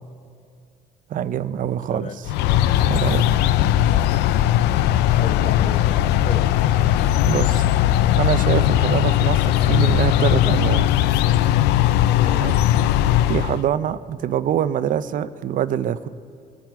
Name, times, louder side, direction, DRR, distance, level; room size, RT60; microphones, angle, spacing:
voice 1, 1.1-2.3 2.9-3.2 7.2-7.7 8.2-10.9 12.3-12.6 13.3-16.1, right 10 dB, 50° right, 14 dB, 0.5 m, -24 dB
voice 2, 1.9-2.2 3.8-4.2 5.2-6.5 6.9-7.2 12.2-12.5, left 6 dB, 40° left, 10 dB, 0.8 m, -34 dB
sound 1, 2.2-13.6, left 12 dB, 85° left, 0.4 m, -18 dB
22.0 x 8.8 x 4.7 m, 2.4 s
cardioid pair, 110°, 17 cm